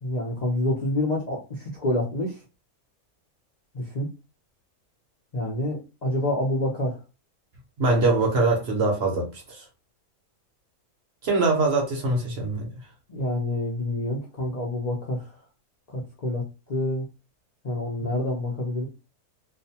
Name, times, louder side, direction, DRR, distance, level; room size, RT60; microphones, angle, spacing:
voice 1, 0.0-2.4 3.7-4.1 5.3-7.0 13.1-15.2 15.9-17.0 17.6-18.9, left 1 dB, 55° left, 0.4 m, -27 dB
voice 2, 7.8-9.7 11.2-12.7, right 3 dB, 55° right, 0.8 m, -23 dB
2.5 x 2.2 x 2.7 m
omnidirectional pair, 1.6 m